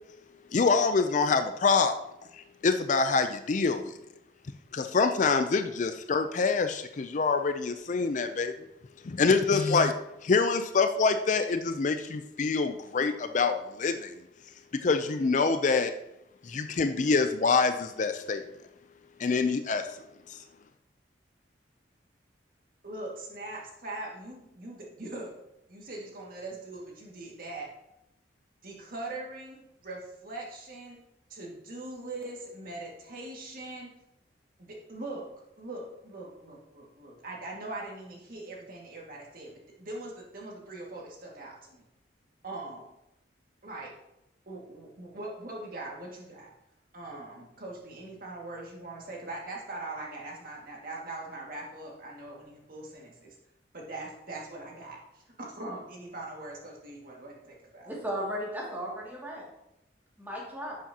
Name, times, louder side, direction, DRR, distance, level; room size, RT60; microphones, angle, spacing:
voice 1, 0.5-2.0 2.3-4.0 4.7-8.5 9.0-9.9 10.2-14.1 14.7-15.9 16.4-18.4 19.2-20.0 20.3-20.4, left 4 dB, 40° left, 9 dB, 0.4 m, -26 dB
voice 2, 22.8-25.3 25.7-27.7 28.6-31.0 31.3-33.9 34.6-35.3 35.6-41.8 42.4-42.9 43.6-43.9 44.5-46.5 46.9-53.4 53.7-57.9, right 2 dB, 50° right, -2 dB, 2.0 m, -41 dB
voice 3, 57.9-59.4 60.2-60.8, equal, 10° right, -4 dB, 2.3 m, -35 dB
11.0 x 7.4 x 2.8 m, 0.85 s
head